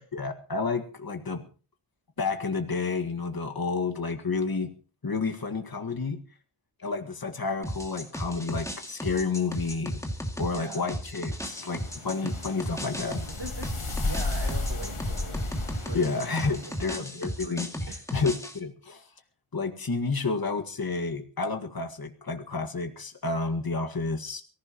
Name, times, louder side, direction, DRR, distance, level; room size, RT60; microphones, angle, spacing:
voice 1, 0.1-1.4 2.2-4.7 5.0-6.2 6.8-10.0 10.4-13.2 15.9-19.1 19.5-24.4, left 4 dB, 45° left, 4 dB, 1.9 m, -30 dB
sound 1, 7.6-18.6, equal, 5° left, 2.3 m, -35 dB
voice 2, 10.5-10.9 12.2-12.3 13.4-18.2, right 3 dB, 55° right, 4 dB, 2.2 m, -42 dB
sound 2, 11.5-16.9, left 3 dB, 80° left, 2.8 m, -34 dB
23.5 x 15.5 x 3.0 m, 0.37 s
wide cardioid pair, 80°, 50 cm